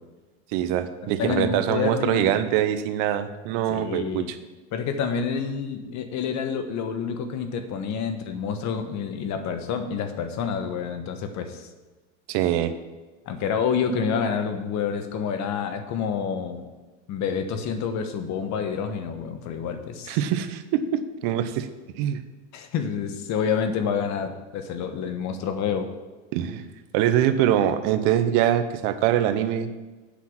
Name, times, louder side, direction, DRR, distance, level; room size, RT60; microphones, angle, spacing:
voice 1, 0.5-4.4 12.3-12.7 20.1-21.7 22.0-22.2 26.3-26.6 26.9-29.7, right 11 dB, 65° right, 11 dB, 0.9 m, -23 dB
voice 2, 1.2-2.3 3.7-4.4 4.7-11.7 13.3-16.7 17.1-20.2 22.5-25.9, left 6 dB, 50° left, 8 dB, 1.3 m, -28 dB
8.3 x 5.9 x 7.4 m, 1.2 s
supercardioid pair, 120°, 37 cm